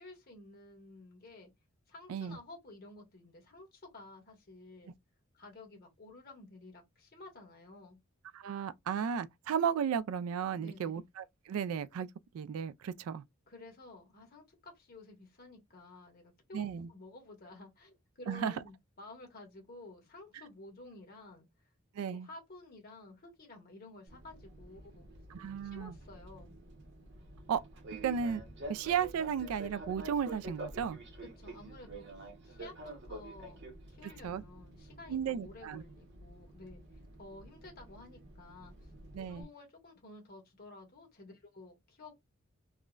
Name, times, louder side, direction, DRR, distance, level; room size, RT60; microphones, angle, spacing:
voice 1, 0.0-1.5 1.9-4.9 5.3-8.0 10.6-11.0 13.5-21.5 22.1-25.1 25.7-26.6 31.2-33.6 33.9-36.8 37.2-42.2, left 2 dB, 45° left, 1.3 m, -52 dB
voice 2, 8.3-12.1 12.3-13.2 16.5-16.9 18.3-18.6 21.9-22.3 25.3-25.9 27.5-27.6 28.0-28.4 28.7-31.0 34.0-34.4 35.1-35.8 39.1-39.5, right 7 dB, 80° right, 0.3 m, -34 dB
Fixed-wing aircraft airplane, 24.1-39.4, right 2 dB, 55° right, 0.8 m, -49 dB
3.6 x 2.1 x 2.3 m
head